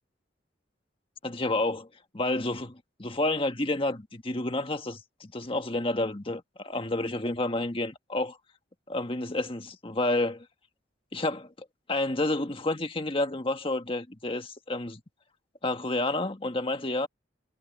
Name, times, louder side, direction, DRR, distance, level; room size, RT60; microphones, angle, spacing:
voice 1, 1.2-1.9 2.1-2.7 3.0-8.4 8.9-10.5 11.1-11.5 11.9-15.0 15.6-17.1, left 2 dB, 30° left, 1.6 m, -29 dB
head